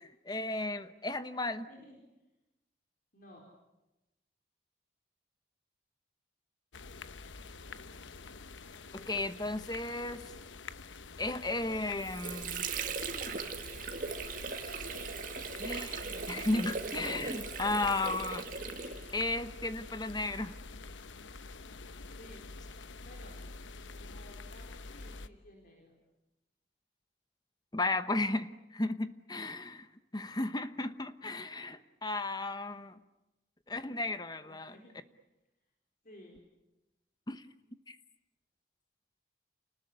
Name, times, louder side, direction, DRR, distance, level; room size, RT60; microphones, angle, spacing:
voice 1, 0.0-1.7 8.9-10.2 11.2-12.6 15.6-18.5 19.1-20.5 27.7-29.9 30.1-33.0 33.7-34.7 37.3-37.4 37.9-38.0, left 2 dB, 20° left, 12 dB, 1.0 m, -34 dB
voice 2, 1.7-2.0 3.1-3.4 22.2-22.4 23.0-23.3 24.0-26.0 34.4-35.0 36.0-36.4, left 1 dB, 50° left, 1 dB, 4.3 m, -55 dB
sound 1, 6.7-25.3, left 3 dB, 85° left, 1.0 m, -47 dB
Water / Sink (filling or washing), 11.7-19.3, right 5 dB, 45° right, 2.2 m, -39 dB
29.0 x 20.0 x 9.8 m, 0.98 s
head